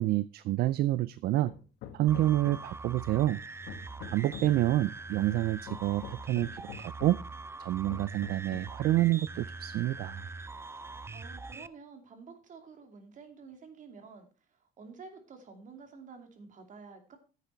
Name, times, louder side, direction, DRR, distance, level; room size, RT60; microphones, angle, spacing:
voice 1, 0.0-1.5 1.9-3.4 4.1-7.2 7.6-10.2, right 15 dB, 70° right, 0.4 m, -28 dB
Hammer, 1.5-2.9 3.3-4.7 5.3-7.3 7.9-8.8, left 9 dB, 80° left, 1.3 m, -47 dB
sound 1, 2.1-11.7, right 3 dB, 15° right, 0.5 m, -43 dB
voice 2, 11.1-17.2, right 5 dB, 50° right, 2.7 m, -50 dB
10.5 x 8.1 x 4.5 m
cardioid pair, 110°, 17 cm